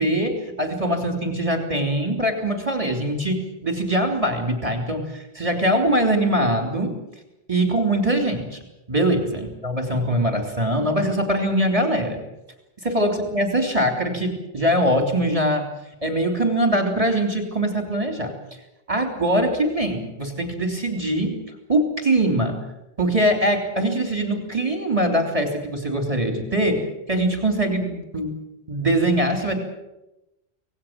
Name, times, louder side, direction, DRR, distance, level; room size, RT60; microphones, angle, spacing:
voice 1, 0.0-7.0 7.5-8.6 8.9-12.2 12.8-15.7 16.0-18.3 18.9-21.4 21.7-22.6 23.0-28.4 28.7-29.5, right 1 dB, 30° right, 4 dB, 3.3 m, -22 dB
26.5 x 18.5 x 7.6 m, 0.93 s
omnidirectional pair, 1.1 m